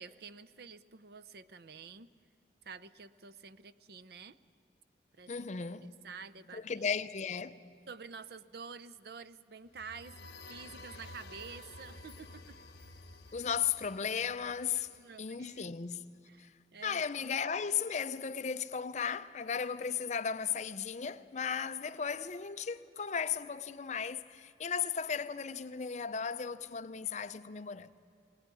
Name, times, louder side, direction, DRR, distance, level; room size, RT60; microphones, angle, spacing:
voice 1, 0.0-2.1 2.6-4.4 5.2-5.5 5.8-7.0 7.9-12.6 14.7-15.6 16.3-17.0, right 5 dB, 55° right, 0.6 m, -49 dB
voice 2, 5.3-5.9 6.5-7.8 13.3-16.5 16.8-27.9, left 6 dB, 40° left, 0.5 m, -36 dB
sound 1, 9.7-15.4, left 2 dB, 60° left, 1.3 m, -52 dB
21.5 x 18.5 x 9.8 m
head